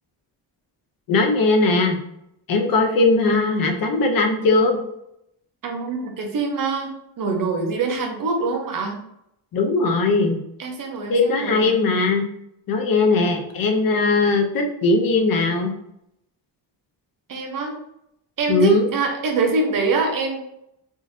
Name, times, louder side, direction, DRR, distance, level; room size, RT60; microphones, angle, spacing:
voice 1, 1.1-2.0 2.5-4.8 9.5-10.4 11.1-12.2 12.7-15.7 18.5-18.8, left 3 dB, 55° left, 4 dB, 0.6 m, -19 dB
voice 2, 5.6-9.0 10.6-11.8 17.3-17.8 18.4-20.4, right 4 dB, 50° right, 3 dB, 0.7 m, -24 dB
3.7 x 2.6 x 2.6 m, 0.79 s
wide cardioid pair, 170°, 42 cm